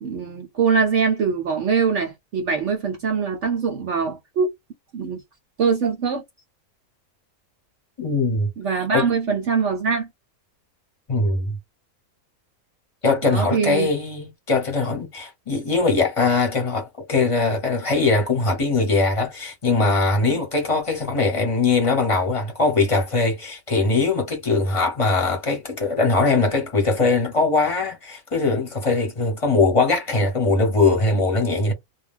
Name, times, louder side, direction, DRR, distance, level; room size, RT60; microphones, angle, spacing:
voice 1, 0.0-4.5 4.9-5.2 5.6-6.2 8.6-10.1 13.2-13.9 20.3-20.4, right 5 dB, 60° right, 0.9 m, -23 dB
voice 2, 8.0-8.5 8.9-9.1 11.1-11.6 13.0-31.7, left 3 dB, 25° left, 1.0 m, -21 dB
2.4 x 2.3 x 3.5 m
omnidirectional pair, 1.5 m